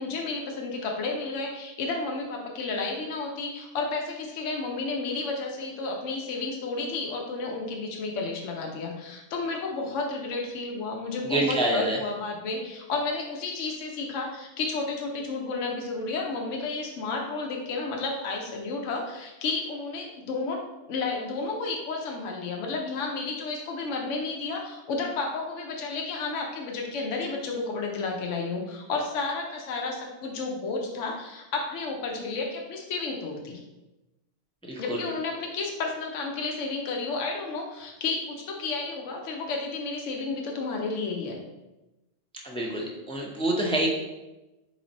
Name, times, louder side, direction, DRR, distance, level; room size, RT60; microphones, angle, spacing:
voice 1, 0.0-20.6 20.9-33.6 34.8-41.4, left 3 dB, 75° left, 1 dB, 1.0 m, -32 dB
voice 2, 11.2-12.0 34.7-35.0 42.4-43.9, right 1 dB, 10° left, -1 dB, 0.3 m, -27 dB
4.0 x 3.2 x 3.9 m, 1.0 s
omnidirectional pair, 1.3 m